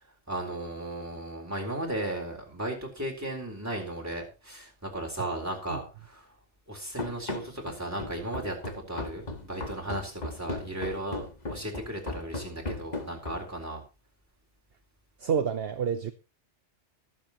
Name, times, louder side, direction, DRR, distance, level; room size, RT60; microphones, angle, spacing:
voice 1, 0.3-6.3 6.7-13.8, right 1 dB, 15° right, -1 dB, 4.0 m, -35 dB
Run, 7.0-13.6, left 2 dB, 40° left, 1.8 m, -37 dB
voice 2, 15.2-16.1, right 7 dB, 60° right, 9 dB, 1.0 m, -28 dB
22.5 x 7.6 x 3.0 m, 0.28 s
omnidirectional pair, 1.2 m